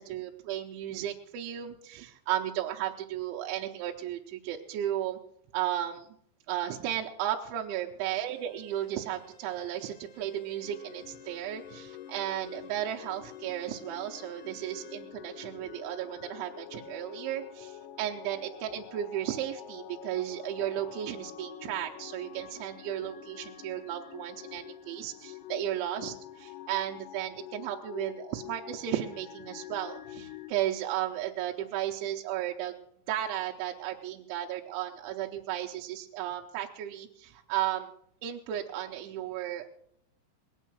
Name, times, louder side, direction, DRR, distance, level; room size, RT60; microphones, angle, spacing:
voice 1, 0.0-5.2 5.5-6.1 6.5-32.7 33.1-37.9 38.2-39.7, right 12 dB, 80° right, 0 dB, 3.0 m, -34 dB
Bowed string instrument, 8.2-15.1, left 3 dB, 70° left, 5.6 m, -57 dB
sound 1, 10.6-30.5, left 11 dB, 90° left, 2.3 m, -47 dB
19.5 x 9.2 x 6.2 m, 0.70 s
omnidirectional pair, 6.0 m